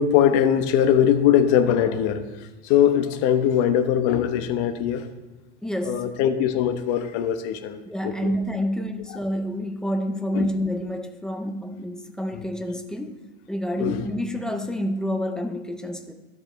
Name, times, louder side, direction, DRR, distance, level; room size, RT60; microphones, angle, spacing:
voice 1, 0.0-2.2 2.6-5.1 5.8-8.3 10.3-10.5 12.3-12.4 13.8-14.0, left 9 dB, 65° left, 1.0 m, -21 dB
voice 2, 5.6-6.2 7.9-16.1, equal, ahead, 0.4 m, -28 dB
12.5 x 7.9 x 3.1 m
cardioid pair, 155°, 35 cm